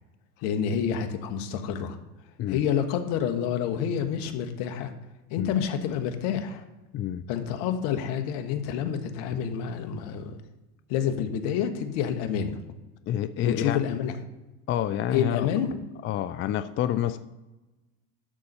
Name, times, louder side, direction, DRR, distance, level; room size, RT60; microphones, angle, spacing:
voice 1, 0.4-2.0 2.5-4.9 5.3-6.6 7.3-10.4 10.9-12.6 13.4-14.1 15.1-15.8, left 8 dB, 65° left, 7 dB, 1.4 m, -28 dB
voice 2, 13.1-13.8 14.7-15.5 16.0-17.2, left 11 dB, 30° left, 12 dB, 0.3 m, -28 dB
11.5 x 4.1 x 6.6 m, 1.1 s
supercardioid pair, 95°, 48 cm